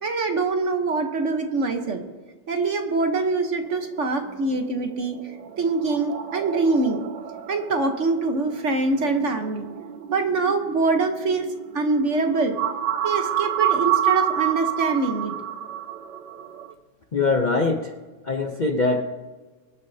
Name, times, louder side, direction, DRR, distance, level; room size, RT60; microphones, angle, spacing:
voice 1, 0.0-2.0 2.5-5.2 5.6-7.0 7.5-9.7 10.1-11.5 11.7-12.6 13.0-15.3, right 3 dB, 45° right, 5 dB, 1.3 m, -24 dB
sound 1, 3.7-16.7, right 10 dB, 85° right, 1.4 m, -29 dB
voice 2, 17.1-17.9 18.2-19.0, left 3 dB, 55° left, 4 dB, 0.5 m, -22 dB
23.5 x 9.7 x 2.8 m, 1.4 s
omnidirectional pair, 1.9 m